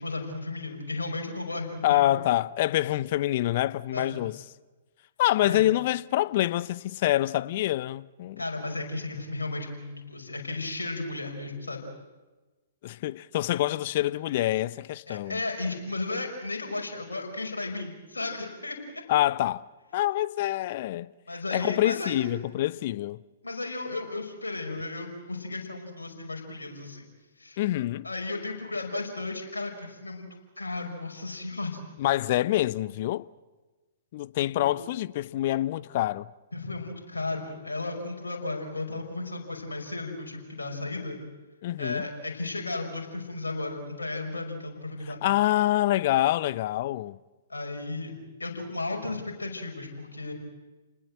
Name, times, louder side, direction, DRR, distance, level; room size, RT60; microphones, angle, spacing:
voice 1, 0.0-2.2 3.9-4.2 5.4-5.6 8.4-11.9 15.1-19.0 21.3-22.3 23.4-27.1 27.4-27.6 28.0-30.3 30.6-31.8 34.6-34.7 36.5-41.2 41.8-45.2 47.5-48.1 48.4-50.3, left 2 dB, 80° left, 5.8 m, -34 dB
voice 2, 1.8-4.4 5.2-8.4 12.8-15.4 19.1-19.6 19.9-21.1 21.5-23.2 27.6-28.1 32.0-33.3 34.1-36.3 41.6-42.0 45.2-47.2, left 15 dB, 45° left, 0.7 m, -26 dB
30.0 x 20.0 x 7.9 m
figure-of-eight pair, 115°, 0 cm